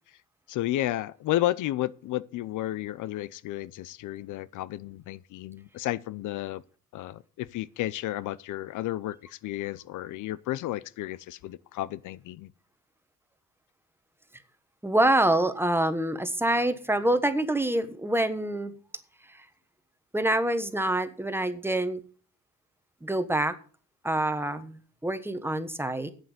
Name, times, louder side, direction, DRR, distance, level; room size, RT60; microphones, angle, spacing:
voice 1, 0.5-6.6 6.9-12.5, left 15 dB, 80° left, 0.6 m, -32 dB
voice 2, 14.8-18.7 19.3-19.5 20.1-22.0 23.0-23.6 24.0-26.1, right 1 dB, 10° right, 1.2 m, -26 dB
8.3 x 7.6 x 8.1 m
cardioid pair, 90°, 30 cm